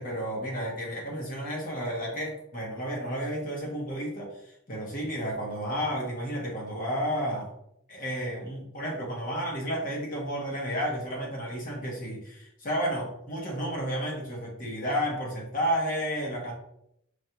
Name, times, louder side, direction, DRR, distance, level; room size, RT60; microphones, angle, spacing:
voice 1, 0.0-4.3 4.7-7.5 7.9-16.5, equal, 40° left, -2 dB, 0.9 m, -32 dB
4.9 x 2.3 x 2.8 m, 0.76 s
head